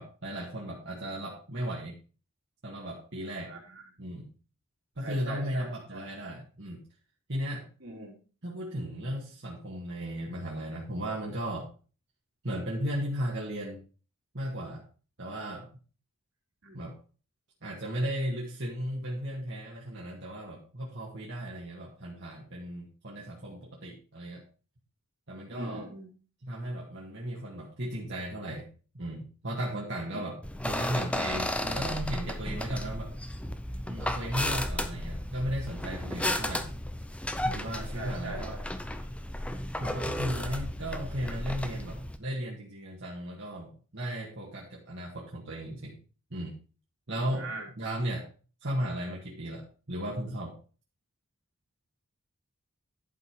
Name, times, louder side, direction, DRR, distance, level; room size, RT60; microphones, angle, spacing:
voice 1, 0.0-2.0 2.6-3.5 4.0-4.3 5.0-6.8 7.3-7.7 8.4-11.7 12.4-13.8 14.3-14.9 15.2-15.7 16.7-17.0 17.6-24.4 25.3-25.9 26.4-28.7 28.9-33.1 33.8-36.7 37.4-38.6 39.8-46.0 46.3-46.5 47.1-48.3 48.6-50.6, equal, 55° right, -4 dB, 1.8 m, -35 dB
voice 2, 3.4-3.9 5.0-6.0 7.8-8.2 16.6-16.8 25.5-26.1 30.1-30.2 37.9-38.6 47.3-47.7, right 2 dB, 70° right, -1 dB, 3.2 m, -41 dB
sound 1, 30.4-42.2, left 1 dB, 5° left, 0.6 m, -34 dB
11.0 x 5.5 x 4.7 m, 0.36 s
head